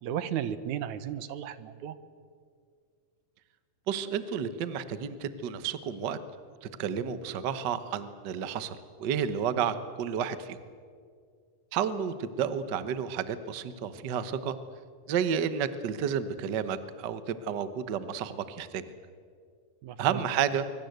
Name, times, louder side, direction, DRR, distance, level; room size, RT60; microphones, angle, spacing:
voice 1, 0.0-2.0 19.8-20.2, right 10 dB, 80° right, 14 dB, 2.5 m, -34 dB
voice 2, 3.9-6.2 6.6-10.6 11.7-14.6 15.1-18.8 20.0-20.7, right 8 dB, 55° right, 12 dB, 1.3 m, -31 dB
25.0 x 24.0 x 8.0 m, 2.1 s
omnidirectional pair, 3.3 m